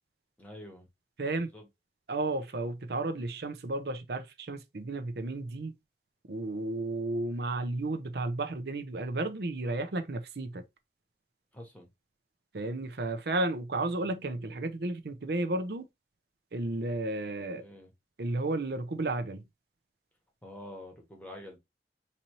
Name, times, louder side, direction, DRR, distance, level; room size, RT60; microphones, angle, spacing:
voice 1, 0.4-0.9 1.2-1.6 11.5-11.9 17.4-17.9 20.4-21.6, left 1 dB, 10° left, 1.0 m, -47 dB
voice 2, 1.2-1.5 2.1-5.8 6.2-10.6 12.5-15.9 16.5-17.6 18.2-19.4, right 2 dB, 65° right, 0.6 m, -33 dB
4.1 x 2.8 x 2.9 m
head